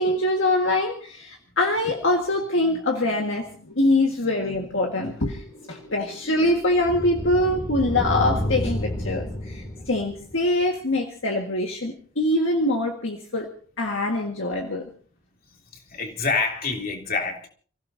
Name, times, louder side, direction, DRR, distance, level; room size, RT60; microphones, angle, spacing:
voice 1, 0.0-5.4 5.7-14.9, left 1 dB, 60° left, 1.7 m, -24 dB
sound 1, 5.2-10.6, left 1 dB, 25° left, 2.8 m, -31 dB
voice 2, 15.7-17.5, left 4 dB, 45° left, 3.2 m, -27 dB
30.0 x 16.0 x 2.7 m
head